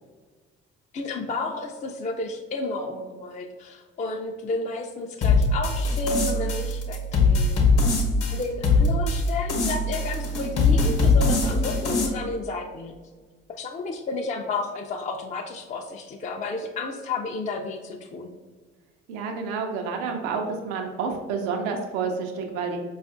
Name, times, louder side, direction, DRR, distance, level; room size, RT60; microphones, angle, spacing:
voice 1, 0.9-7.6 8.0-12.9 13.5-18.3, left 3 dB, 25° left, 3 dB, 0.4 m, -32 dB
sound 1, 5.2-12.1, left 3 dB, 55° left, 0.9 m, -22 dB
voice 2, 19.1-22.8, right 5 dB, 80° right, 3 dB, 0.5 m, -29 dB
4.6 x 2.4 x 2.5 m, 1.4 s
hypercardioid pair, 50°, 30 cm